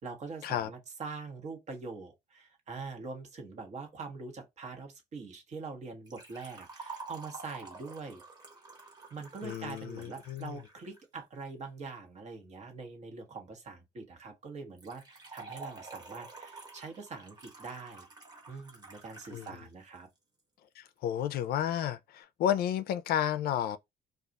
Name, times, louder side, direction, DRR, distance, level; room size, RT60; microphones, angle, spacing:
voice 1, 0.0-8.2 9.1-18.1 18.5-20.1, right 4 dB, 45° right, 1.1 m, -44 dB
Liquid, 6.1-11.0 14.8-19.6 19.9-20.0 20.9-21.0, right 3 dB, 25° right, 1.2 m, -49 dB
voice 2, 9.4-10.6 19.3-19.5 20.8-23.8, left 10 dB, 65° left, 0.4 m, -32 dB
2.4 x 2.4 x 3.9 m
cardioid pair, 110°, 17 cm